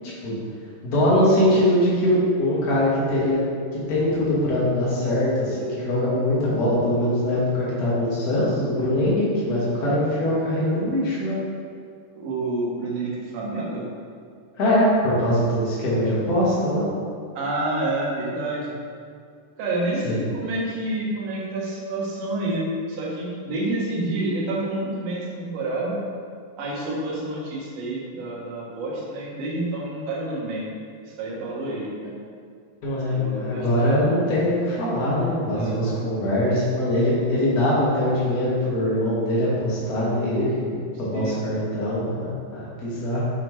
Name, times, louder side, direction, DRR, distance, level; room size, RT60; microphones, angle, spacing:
voice 1, 0.8-3.4 3.7-11.4 14.6-16.9 20.0-20.2 32.8-43.3, left 1 dB, 45° left, -8 dB, 1.2 m, -22 dB
voice 2, 12.1-13.8 17.4-18.8 19.6-26.0 26.6-30.6 31.1-32.2 33.1-33.9 35.5-35.8 41.1-41.4, right 2 dB, 65° right, -4 dB, 1.9 m, -28 dB
6.1 x 5.0 x 3.1 m, 2.3 s
omnidirectional pair, 3.9 m